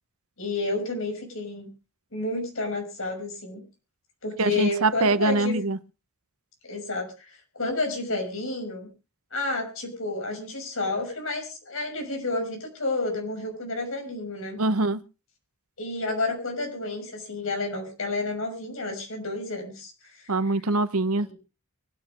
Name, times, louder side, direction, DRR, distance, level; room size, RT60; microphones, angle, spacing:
voice 1, 0.4-1.7 2.1-3.6 4.2-5.6 6.6-8.9 9.3-14.6 15.8-20.3 21.3-21.4, left 2 dB, 65° left, 6.3 m, -30 dB
voice 2, 4.4-5.8 14.6-15.0 20.3-21.3, right 2 dB, 80° right, 1.0 m, -23 dB
24.0 x 9.8 x 3.4 m
head